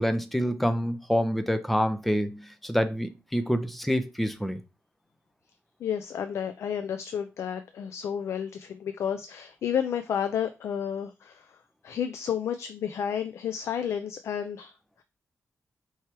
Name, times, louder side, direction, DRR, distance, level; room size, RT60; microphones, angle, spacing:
voice 1, 0.0-4.6, equal, ahead, 0.4 m, -27 dB
voice 2, 5.8-11.5 11.8-14.7, left 8 dB, 80° left, 0.3 m, -31 dB
4.6 x 3.1 x 2.9 m
wide cardioid pair, 160°, 5 cm